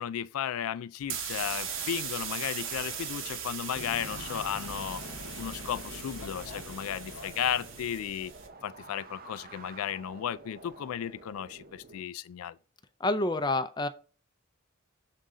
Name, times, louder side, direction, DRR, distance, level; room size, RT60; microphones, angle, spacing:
voice 1, 0.0-5.0 5.4-8.3 8.6-12.6, left 9 dB, 90° left, 0.3 m, -34 dB
sound 1, 1.0-8.5, right 7 dB, 65° right, 1.1 m, -39 dB
sound 2, 1.3-12.0, right 3 dB, 45° right, 0.6 m, -51 dB
sound 3, 3.7-8.4, left 2 dB, 65° left, 0.8 m, -44 dB
voice 2, 13.0-13.9, left 2 dB, 20° left, 0.5 m, -28 dB
6.6 x 3.8 x 4.9 m
head